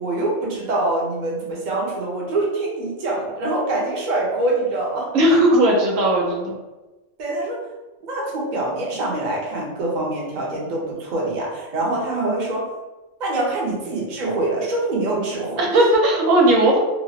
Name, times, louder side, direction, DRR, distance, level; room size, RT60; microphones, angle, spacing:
voice 1, 0.0-5.1 5.5-5.6 7.2-7.6 8.0-12.7 13.2-15.6, right 2 dB, 45° right, -3 dB, 0.7 m, -25 dB
voice 2, 5.1-6.6 15.6-16.8, right 1 dB, 85° right, -1 dB, 1.1 m, -16 dB
2.9 x 2.3 x 2.8 m, 1.1 s
omnidirectional pair, 1.3 m